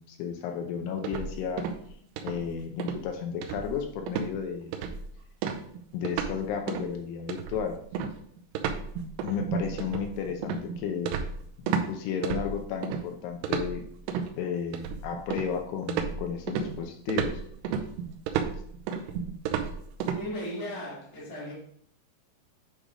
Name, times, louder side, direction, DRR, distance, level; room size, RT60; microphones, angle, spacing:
voice 1, 0.0-1.7 2.2-4.8 5.9-7.8 9.2-11.2 11.7-13.8 14.4-17.4, left 7 dB, 80° left, 4 dB, 2.6 m, -33 dB
sound 1, 1.0-1.9 2.2-2.5 2.8-3.0 3.4-3.8 4.1-4.3 4.7-5.1 5.4-6.4 6.7-6.9 7.3-11.9 12.2-13.0 13.4-14.3 14.7-15.6 15.9-20.2, right 7 dB, 80° right, 2.7 m, -32 dB
voice 2, 20.1-21.5, left 1 dB, 40° left, -4 dB, 1.3 m, -36 dB
8.7 x 3.3 x 4.9 m, 0.65 s
omnidirectional pair, 5.1 m